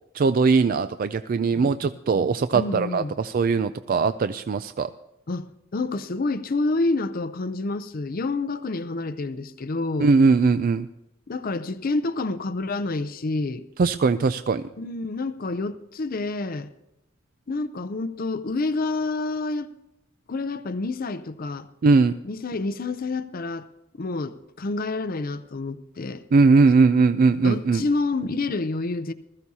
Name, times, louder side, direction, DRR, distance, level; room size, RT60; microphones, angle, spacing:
voice 1, 0.1-4.9 10.0-10.9 13.8-14.6 21.8-22.1 26.3-27.8, right 4 dB, 45° right, 0.4 m, -20 dB
voice 2, 2.5-3.2 5.3-10.1 11.3-13.6 14.8-16.7 17.5-19.7 20.3-21.7 22.2-23.7 23.9-26.2 27.4-29.1, left 3 dB, 45° left, 0.6 m, -28 dB
20.0 x 14.0 x 2.8 m
head